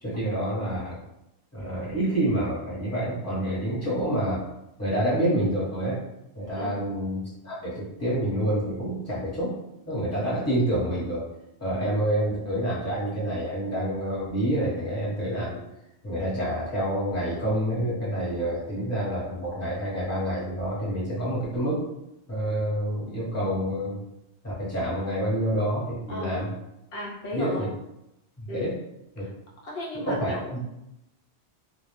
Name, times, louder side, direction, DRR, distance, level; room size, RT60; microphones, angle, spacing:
voice 1, 0.0-0.9 1.5-4.4 4.8-6.0 6.3-9.5 9.8-11.2 11.6-15.6 16.0-21.8 22.3-24.0 24.4-26.5 27.3-27.7 28.4-28.7 29.1-29.3 29.9-30.6, right 1 dB, 15° left, -9 dB, 1.0 m, -28 dB
voice 2, 26.9-27.7 28.5-28.7 29.2-29.3 29.6-30.5, left 1 dB, 65° left, -3 dB, 0.8 m, -35 dB
2.2 x 2.0 x 3.1 m, 0.87 s
omnidirectional pair, 1.1 m